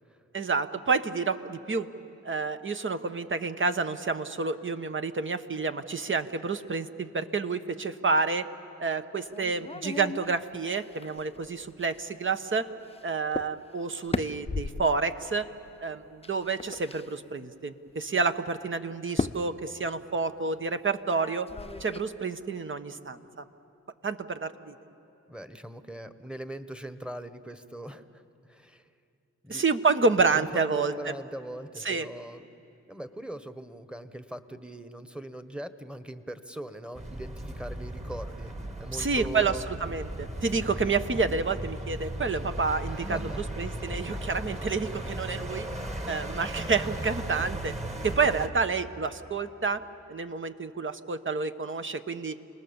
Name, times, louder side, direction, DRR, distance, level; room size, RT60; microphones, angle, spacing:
voice 1, 0.3-1.9 2.2-8.5 8.8-12.7 13.0-15.5 15.8-21.5 21.8-23.4 24.0-24.7 29.5-30.9 31.8-32.1 38.9-45.7 46.1-47.7 48.0-49.8 50.1-52.4, right 4 dB, 40° right, 9 dB, 1.2 m, -29 dB
sound 1, 9.2-12.1 12.9-13.0 13.3-13.5 13.8-15.0 16.2-17.1 17.9-18.0 19.1-19.5 21.1-22.0, left 3 dB, 20° left, 0.7 m, -35 dB
voice 2, 25.3-28.9 29.4-29.6 30.3-32.4 32.9-39.6 42.9-43.5 45.8-46.2, right 1 dB, 5° right, 10 dB, 1.4 m, -41 dB
sound 2, 36.9-48.5, right 1 dB, 20° right, 2.0 m, -36 dB
30.0 x 19.5 x 7.2 m, 2.8 s
cardioid pair, 55°, 31 cm